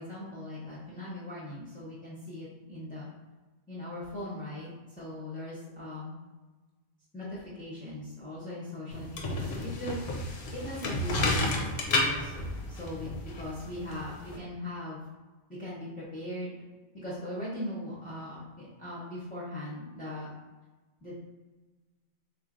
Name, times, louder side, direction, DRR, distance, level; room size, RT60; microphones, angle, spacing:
voice 1, 0.0-3.1 3.7-4.7 5.0-6.2 7.1-15.0 15.6-16.6 16.9-18.4 18.8-20.3 21.0-21.1, left 1 dB, 10° left, -8 dB, 0.6 m, -39 dB
sound 1, 8.9-14.4, left 2 dB, 70° left, 0.9 m, -31 dB
3.7 x 3.1 x 2.5 m, 1.2 s
omnidirectional pair, 1.1 m